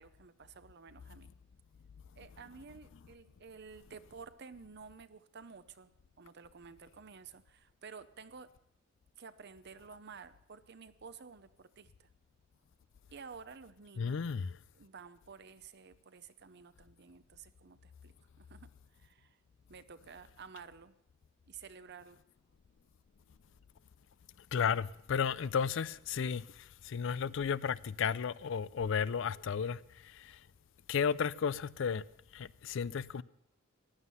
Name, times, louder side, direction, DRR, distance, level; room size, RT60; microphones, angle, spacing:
voice 1, 0.0-1.3 2.2-5.9 6.2-8.5 9.2-12.1 13.1-14.2 14.7-19.4 19.7-21.0 21.5-22.2, right 5 dB, 55° right, 0.7 m, -52 dB
voice 2, 14.0-14.6 24.5-30.4 30.9-32.0 32.3-33.2, left 6 dB, 65° left, 0.4 m, -33 dB
15.5 x 11.5 x 5.6 m
head